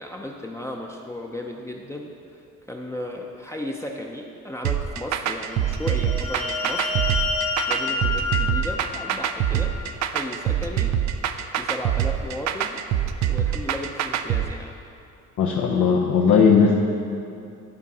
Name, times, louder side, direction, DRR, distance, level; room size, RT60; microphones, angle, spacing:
voice 1, 0.0-2.4 2.7-7.0 7.7-11.0 11.6-12.8 13.3-14.7, left 1 dB, 10° left, 0 dB, 0.6 m, -35 dB
sound 1, 4.6-14.4, right 10 dB, 65° right, 0.5 m, -24 dB
sound 2, 5.5-10.0, left 4 dB, 50° left, 1.4 m, -29 dB
voice 2, 15.4-16.7, left 6 dB, 80° left, -1 dB, 0.7 m, -17 dB
11.0 x 3.8 x 5.4 m, 2.6 s
cardioid pair, 90°, 30 cm